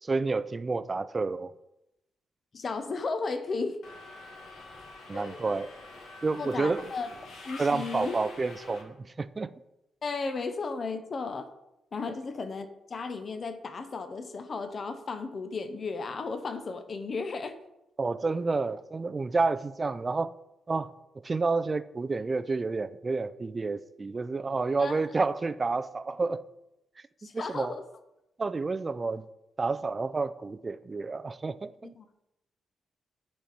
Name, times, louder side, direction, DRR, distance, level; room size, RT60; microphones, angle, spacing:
voice 1, 0.0-1.5 5.1-5.7 6.2-6.9 7.6-9.5 18.0-20.3 20.7-20.9 21.2-26.4 27.3-27.7 28.4-29.3 29.6-31.9, right 3 dB, 25° right, 0.3 m, -29 dB
voice 2, 2.5-3.8 5.1-5.4 6.4-7.1 7.4-8.2 10.0-11.5 11.9-17.6 24.8-25.0 27.2-27.8 31.9-32.0, left 4 dB, 35° left, 0.7 m, -34 dB
Subway metro underground, 3.8-8.8, left 2 dB, 70° left, 1.6 m, -46 dB
9.2 x 4.2 x 4.9 m
wide cardioid pair, 150°, 0 cm